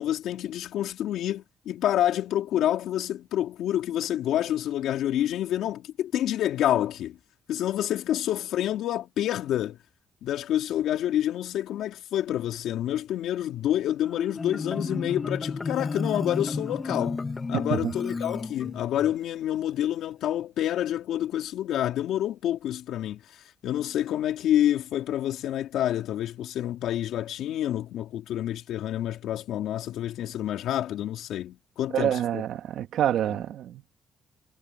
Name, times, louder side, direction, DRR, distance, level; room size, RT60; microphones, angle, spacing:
voice 1, 0.0-7.2 7.5-9.8 10.2-17.2 17.5-32.4 33.3-33.4, left 12 dB, 80° left, 3.5 m, -28 dB
Marimba xylophone, 14.0-19.1, left 4 dB, 30° left, 2.1 m, -32 dB
voice 2, 31.9-33.8, right 11 dB, 75° right, 2.3 m, -27 dB
cardioid pair, 90°, 0 cm